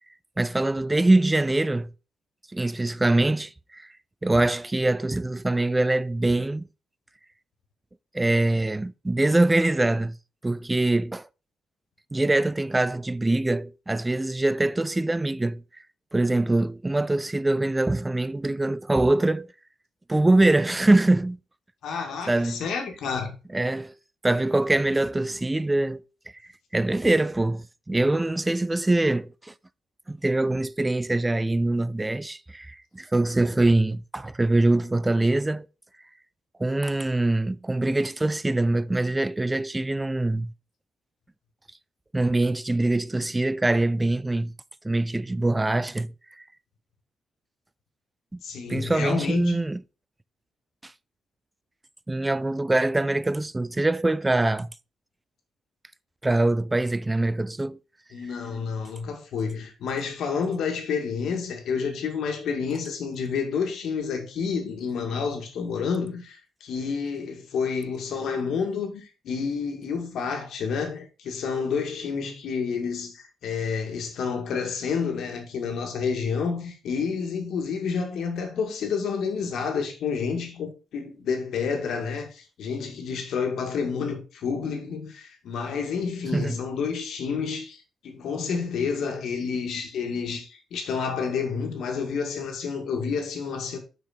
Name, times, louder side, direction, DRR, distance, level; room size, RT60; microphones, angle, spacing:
voice 1, 0.4-1.9 2.5-3.9 4.2-6.7 8.1-10.2 10.4-11.3 12.1-15.6 16.1-19.5 20.1-21.4 22.3-22.6 23.5-23.9 24.2-26.0 26.7-29.5 30.1-35.7 36.6-40.5 42.1-44.5 44.8-46.1 46.4-46.5 48.3-48.4 48.7-49.8 50.8-50.9 52.1-54.7 56.2-57.8 86.3-86.6, right 2 dB, 10° right, 0.3 m, -23 dB
voice 2, 21.8-23.4 48.4-49.6 58.1-93.8, left 5 dB, 75° left, 1.9 m, -29 dB
5.9 x 5.9 x 4.2 m
cardioid pair, 140°, 0 cm